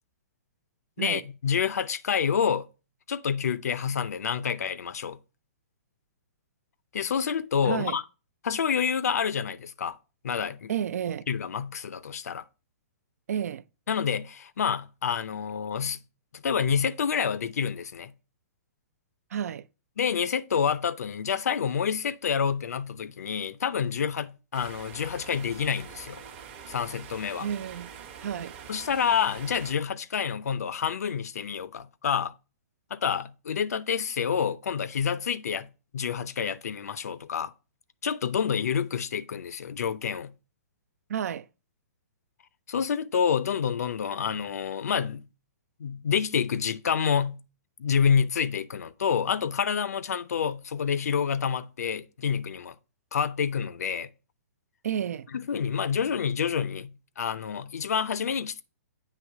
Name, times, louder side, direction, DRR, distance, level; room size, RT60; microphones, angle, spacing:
voice 1, 1.0-2.7 3.1-5.2 6.9-8.0 8.4-10.0 10.2-10.7 11.3-12.4 13.9-16.0 16.3-18.1 20.0-26.2 26.7-27.5 28.7-32.3 32.9-37.5 38.0-40.3 42.7-45.2 45.8-47.4 47.8-52.7 53.1-54.1 55.3-58.6, left 7 dB, 80° left, 0.5 m, -28 dB
voice 2, 7.7-8.0 10.7-11.3 13.3-13.6 19.3-19.7 27.4-27.9 28.2-28.5 41.1-41.5 54.8-55.3, right 9 dB, 75° right, 0.3 m, -31 dB
sound 1, 24.5-29.7, right 7 dB, 45° right, 1.0 m, -45 dB
8.3 x 3.1 x 4.6 m
hypercardioid pair, 140°, 8 cm